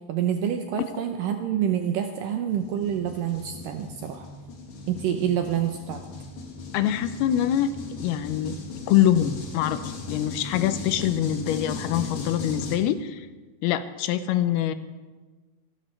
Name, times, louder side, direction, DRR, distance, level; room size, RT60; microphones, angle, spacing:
voice 1, 0.1-4.3 4.9-6.0, right 9 dB, 75° right, 5 dB, 2.1 m, -27 dB
sound 1, 2.5-12.8, left 3 dB, 60° left, 3.1 m, -37 dB
voice 2, 6.7-7.7 8.0-8.6 8.9-13.3 13.6-14.7, left 11 dB, 85° left, 12 dB, 2.6 m, -24 dB
27.5 x 12.5 x 3.2 m, 1.3 s
omnidirectional pair, 4.5 m